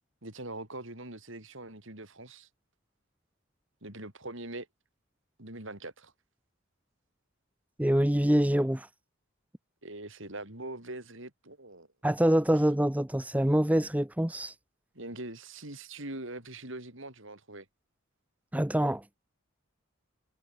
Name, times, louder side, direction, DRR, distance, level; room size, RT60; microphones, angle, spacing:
voice 1, 0.2-2.5 3.8-4.7 5.4-6.1 9.8-11.9 14.9-17.7, right 2 dB, 60° right, 5.1 m, -42 dB
voice 2, 7.8-8.9 12.0-14.5 18.5-19.2, right 1 dB, 5° right, 0.7 m, -25 dB
head